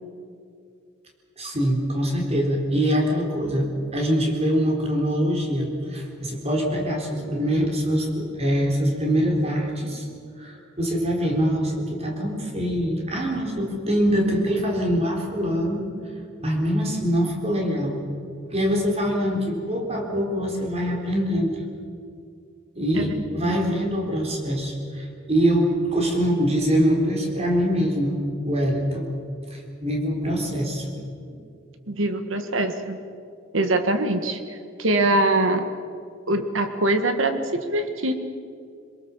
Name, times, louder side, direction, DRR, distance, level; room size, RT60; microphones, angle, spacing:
voice 1, 1.4-10.1 10.4-15.8 16.4-18.0 18.5-21.6 22.7-28.2 28.4-29.1 29.5-30.9 31.1-31.2, equal, 30° right, 1 dB, 4.0 m, -24 dB
voice 2, 31.9-33.0 33.5-34.4 34.8-35.7 36.3-38.1, right 2 dB, 70° right, 7 dB, 1.7 m, -23 dB
23.5 x 21.5 x 7.3 m, 2.4 s
head